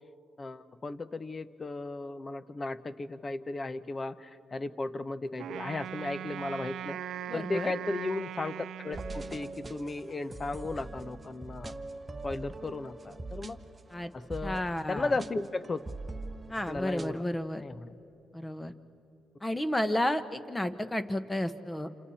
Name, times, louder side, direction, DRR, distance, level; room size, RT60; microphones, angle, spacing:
voice 1, 0.4-11.7 12.2-13.6 14.1-14.6 14.9-15.8 16.7-17.2 17.6-17.9, left 3 dB, 30° left, 13 dB, 0.9 m, -35 dB
Wind instrument woodwind instrument, 5.4-9.8, right 10 dB, 70° right, 0.4 m, -40 dB
voice 2, 7.3-7.7 13.9-14.1 14.4-15.1 16.5-17.6 18.3-18.7 19.4-21.9, left 1 dB, 15° left, 10 dB, 1.2 m, -32 dB
sound 1, 8.9-17.2, right 2 dB, 25° right, 1.0 m, -43 dB
29.5 x 27.5 x 4.3 m, 3.0 s
cardioid pair, 90°, 0 cm